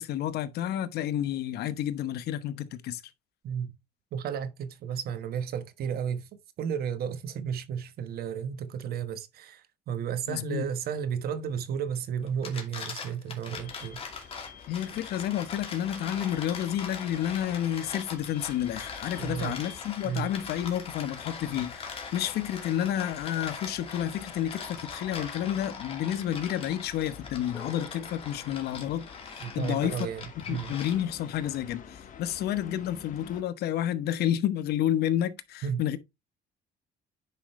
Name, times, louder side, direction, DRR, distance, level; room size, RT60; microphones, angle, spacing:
voice 1, 0.0-3.0 10.3-10.6 14.7-29.9 30.5-36.0, left 11 dB, 70° left, 1.0 m, -30 dB
voice 2, 4.1-6.3 6.6-14.3 19.2-19.6 20.0-20.3 29.4-30.8 35.6-35.8, right 7 dB, 65° right, 1.2 m, -33 dB
sound 1, 12.3-31.3, left 5 dB, 35° left, 2.5 m, -42 dB
sound 2, 13.5-33.4, left 8 dB, 50° left, 1.6 m, -49 dB
sound 3, 27.1-32.9, left 2 dB, 10° left, 4.5 m, -56 dB
10.0 x 5.1 x 3.1 m
cardioid pair, 110°, 17 cm